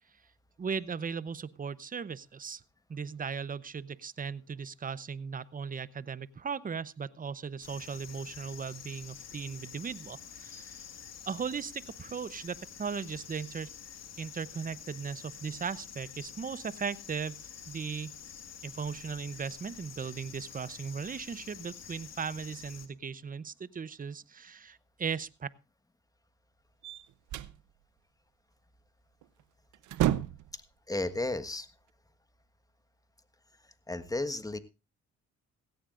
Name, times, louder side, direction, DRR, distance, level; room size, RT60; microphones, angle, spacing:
voice 1, 0.6-2.6 2.9-10.9 11.3-13.7 14.2-18.2 18.6-25.5, right 6 dB, 30° right, 18 dB, 0.8 m, -37 dB
sound 1, 7.6-22.9, left 8 dB, 60° left, 2.0 m, -48 dB
sound 2, 26.8-27.6 29.2-29.4 29.7-30.6, right 13 dB, 80° right, 0.8 m, -30 dB
voice 2, 30.9-31.7 33.9-34.6, left 2 dB, 10° left, 10 dB, 1.4 m, -33 dB
17.0 x 16.5 x 2.5 m, 0.27 s
cardioid pair, 90°, 30 cm